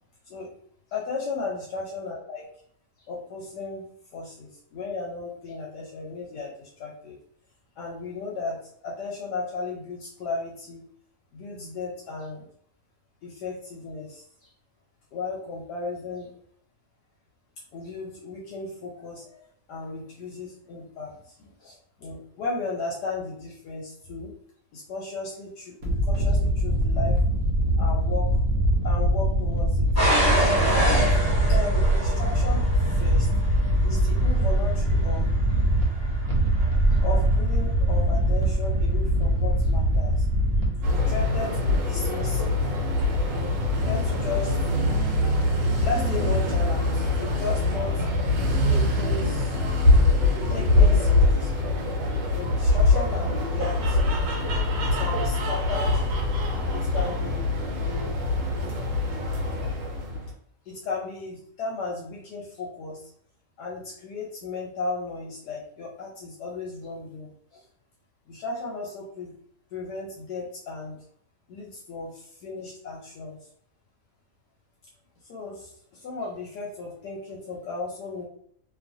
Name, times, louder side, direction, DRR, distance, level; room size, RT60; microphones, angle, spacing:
voice 1, 0.9-2.5 3.1-3.9 4.1-7.2 7.8-10.8 11.3-12.5 13.2-14.5 15.1-16.3 17.7-19.4 19.7-24.3 24.7-27.2 27.8-28.3 28.8-29.9 30.6-31.1 31.5-32.7 32.9-33.3 33.8-35.3 36.9-40.2 40.9-42.7 43.2-44.6 45.6-48.0 48.7-49.6 50.5-51.7 52.3-54.2 54.8-56.1 56.7-58.2 60.7-63.1 63.6-67.6 68.3-69.3 69.7-71.0 71.5-73.4 75.3-78.3, left 3 dB, 75° left, -2 dB, 1.1 m, -35 dB
sound 1, 25.8-40.9, equal, 60° right, 1.1 m, -23 dB
sound 2, 30.0-38.8 39.5-39.9 40.5-40.6, right 1 dB, 10° left, 1.3 m, -26 dB
sound 3, 40.8-60.3, left 2 dB, 80° right, 1.3 m, -23 dB
2.9 x 2.4 x 2.5 m, 0.63 s
omnidirectional pair, 1.9 m